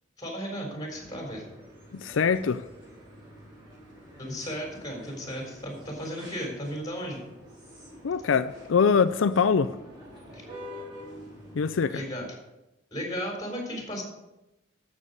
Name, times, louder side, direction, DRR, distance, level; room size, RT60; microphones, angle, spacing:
voice 1, 0.2-1.4 4.2-7.2 10.3-10.4 11.9-12.3 12.9-14.0, equal, 20° left, 4.0 m, -35 dB
sound 1, 0.9-12.2, equal, 25° right, 4.7 m, -47 dB
voice 2, 1.9-2.6 8.0-9.7 11.5-12.0, left 6 dB, 85° left, 0.4 m, -23 dB
13.0 x 7.5 x 5.4 m
head